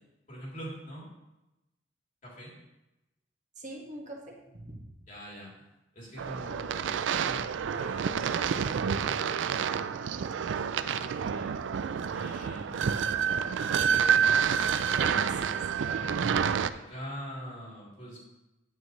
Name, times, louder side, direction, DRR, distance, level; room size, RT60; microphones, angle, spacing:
voice 1, 0.3-1.1 2.2-2.5 5.1-5.6 5.9-11.5 12.0-16.1 16.7-18.2, equal, 45° left, -5 dB, 3.3 m, -45 dB
voice 2, 3.6-4.8 14.9-15.6 16.0-16.7, right 1 dB, 40° right, -1 dB, 1.8 m, -42 dB
sound 1, 6.2-16.7, right 7 dB, 85° right, 0.4 m, -28 dB
9.3 x 8.7 x 3.2 m, 0.95 s
head